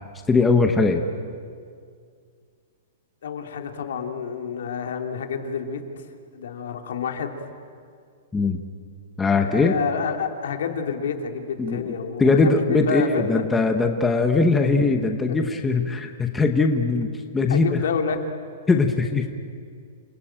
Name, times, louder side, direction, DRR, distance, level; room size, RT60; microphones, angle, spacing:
voice 1, 0.3-1.0 8.3-8.6 9.2-9.7 11.6-11.9 12.2-17.8 18.7-19.3, left 3 dB, 5° left, 4 dB, 1.0 m, -20 dB
voice 2, 3.2-5.8 6.3-7.4 9.4-13.4 15.3-15.4 17.5-18.2, left 6 dB, 70° left, 4 dB, 2.9 m, -28 dB
29.0 x 20.5 x 9.0 m, 2.2 s
hypercardioid pair, 175°, 0 cm